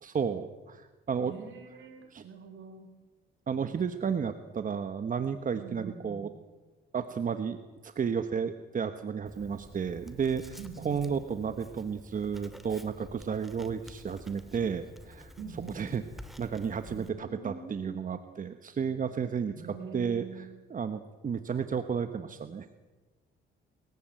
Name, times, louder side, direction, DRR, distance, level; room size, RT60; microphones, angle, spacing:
voice 1, 0.0-1.3 2.1-2.2 3.5-6.3 6.9-10.6 10.8-15.3 15.7-16.0 16.4-22.7, right 6 dB, 40° right, 9 dB, 1.2 m, -32 dB
voice 2, 1.2-2.9 5.5-6.2 10.6-11.2 15.4-16.0 16.9-18.0 19.4-20.6, right 5 dB, 70° right, 5 dB, 6.3 m, -44 dB
Writing, 9.3-17.1, equal, ahead, 2.6 m, -50 dB
28.0 x 15.0 x 8.9 m, 1.3 s
cardioid pair, 90°, 20 cm